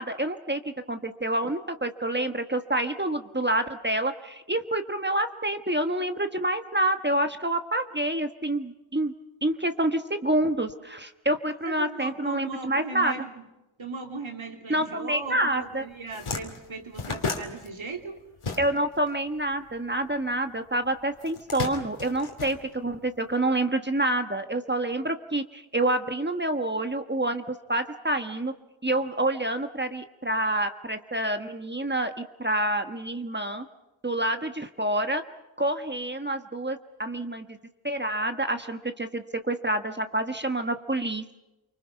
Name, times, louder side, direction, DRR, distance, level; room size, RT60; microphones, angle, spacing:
voice 1, 0.0-9.1 9.4-13.1 14.7-15.8 18.6-28.5 28.8-32.1 32.4-33.7 34.0-35.2 35.6-37.5 37.8-41.4, right 1 dB, 20° right, 7 dB, 1.2 m, -27 dB
voice 2, 11.6-13.4 13.8-18.2, right 4 dB, 70° right, 4 dB, 3.1 m, -37 dB
sound 1, 15.5-15.6 15.9-19.1 19.3-20.5 21.2-23.2, left 4 dB, 85° left, 2.8 m, -34 dB
30.0 x 24.5 x 5.8 m, 0.98 s
wide cardioid pair, 75°, 49 cm